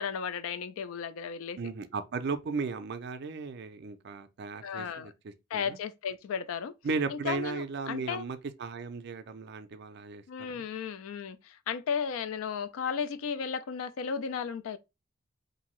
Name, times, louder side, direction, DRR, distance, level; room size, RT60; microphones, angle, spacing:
voice 1, 0.0-1.6 4.6-5.1 5.5-6.7 7.1-8.3 10.3-14.8, left 6 dB, 70° left, 0.3 m, -34 dB
voice 2, 1.6-5.8 6.8-10.6, right 4 dB, 50° right, 0.4 m, -36 dB
2.8 x 2.6 x 3.0 m
head